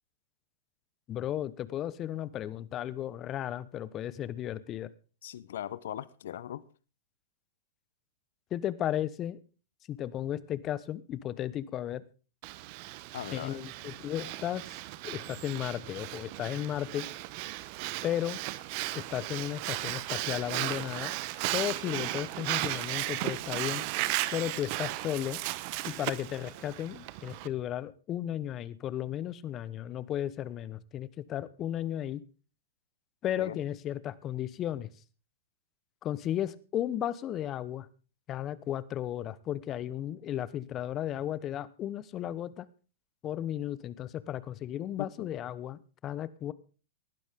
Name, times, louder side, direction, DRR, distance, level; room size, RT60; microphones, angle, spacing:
voice 1, 1.1-4.9 8.5-9.4 9.9-12.0 13.3-14.7 15.0-17.0 18.0-18.4 18.9-21.2 21.5-23.8 24.3-25.4 25.8-32.2 33.2-34.9 36.0-37.9 38.3-42.7 43.2-46.5, left 11 dB, 35° left, 1.0 m, -34 dB
voice 2, 5.2-6.6 13.1-13.6 33.4-33.6 45.0-45.4, left 11 dB, 70° left, 0.8 m, -39 dB
Breathing, 12.4-27.5, right 18 dB, 50° right, 1.0 m, -36 dB
19.0 x 12.0 x 3.7 m
hypercardioid pair, 105°, 0 cm